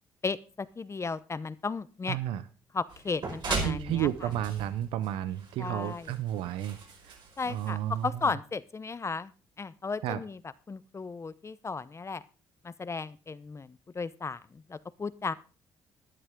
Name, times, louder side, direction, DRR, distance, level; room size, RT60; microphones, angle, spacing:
voice 1, 0.2-2.2 2.7-4.3 5.6-6.1 7.4-9.3 9.6-10.4 10.7-12.2 12.6-15.3, left 4 dB, 30° left, 16 dB, 0.8 m, -35 dB
voice 2, 2.1-2.4 3.6-6.8 7.0-7.2 7.5-8.1 10.0-10.2, right 12 dB, 80° right, 14 dB, 0.7 m, -32 dB
sound 1, 2.9-8.2, right 3 dB, 55° right, 5.1 m, -38 dB
14.0 x 11.0 x 3.7 m, 0.35 s
supercardioid pair, 65°, 9 cm